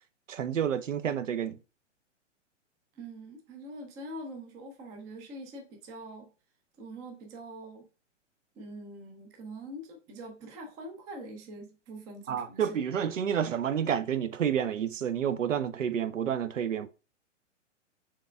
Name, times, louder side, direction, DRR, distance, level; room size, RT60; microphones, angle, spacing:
voice 1, 0.3-1.6 12.3-16.9, right 8 dB, 90° right, 0.5 m, -29 dB
voice 2, 3.0-6.3 6.8-7.9 8.6-12.7, right 1 dB, 10° right, 0.3 m, -44 dB
4.6 x 3.6 x 2.2 m
hypercardioid pair, 120°, 37 cm